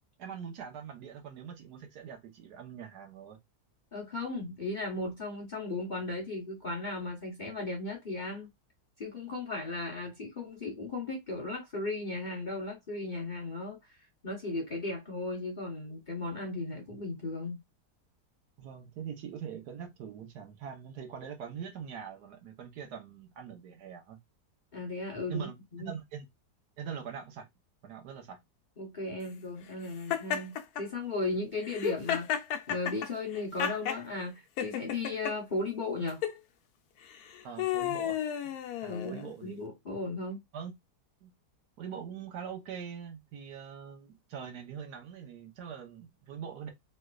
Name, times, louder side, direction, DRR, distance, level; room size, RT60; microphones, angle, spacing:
voice 1, 0.2-3.4 16.7-16.8 18.6-24.2 25.3-26.3 26.8-27.5 27.8-28.4 37.4-38.5 38.8-39.6 40.5-40.7 41.2-41.3 41.8-46.7, right 7 dB, 70° right, 1.3 m, -43 dB
voice 2, 3.9-8.5 9.0-17.6 24.7-26.0 28.8-32.3 32.7-36.2 38.9-40.4, left 2 dB, 40° left, 0.7 m, -36 dB
Laughter, 30.1-30.8 31.6-34.0 34.6-35.3 36.1-36.4 37.1-39.3, left 10 dB, 75° left, 1.1 m, -33 dB
3.2 x 3.1 x 2.3 m
omnidirectional pair, 1.8 m